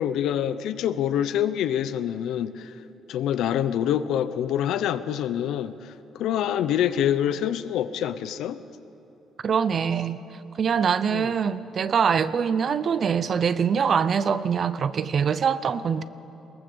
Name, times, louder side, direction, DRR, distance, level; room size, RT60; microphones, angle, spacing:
voice 1, 0.0-2.7 3.1-8.6 11.1-11.3, left 10 dB, 80° left, 13 dB, 0.8 m, -26 dB
voice 2, 9.4-10.2 10.6-16.0, right 7 dB, 45° right, 15 dB, 0.7 m, -23 dB
21.5 x 18.5 x 6.9 m, 3.0 s
cardioid pair, 115°, 0 cm